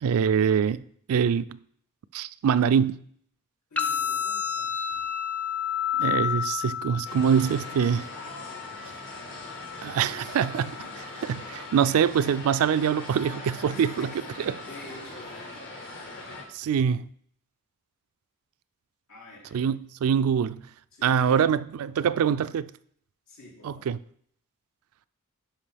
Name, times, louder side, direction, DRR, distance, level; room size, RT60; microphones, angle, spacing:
voice 1, 0.0-0.8 1.1-1.4 2.1-3.0 6.0-8.1 9.8-10.7 11.3-14.1 14.4-14.6 16.5-17.0 19.5-20.6 21.0-22.7 23.6-24.0, right 7 dB, 65° right, 0.3 m, -24 dB
voice 2, 3.7-5.1 10.5-11.2 13.7-14.2 14.6-15.6 19.1-19.6 20.9-21.5 23.3-23.9, left 2 dB, 85° left, 2.7 m, -48 dB
sound 1, 3.8-11.8, left 8 dB, 5° left, 0.5 m, -32 dB
sound 2, 7.0-16.4, left 2 dB, 60° left, 1.5 m, -41 dB
11.0 x 4.8 x 3.4 m
head